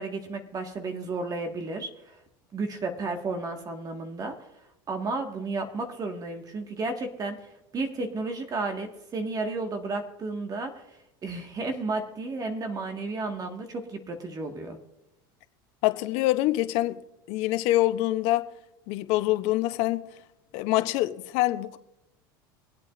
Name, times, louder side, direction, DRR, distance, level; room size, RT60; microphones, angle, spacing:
voice 1, 0.0-2.2 2.5-4.4 4.9-11.0 11.2-14.8, right 3 dB, 35° right, 1.6 m, -33 dB
voice 2, 15.8-17.0 17.3-18.5 18.9-20.0 20.5-21.8, left 16 dB, 65° left, 0.7 m, -25 dB
23.5 x 8.4 x 2.5 m
supercardioid pair, 100°, 12 cm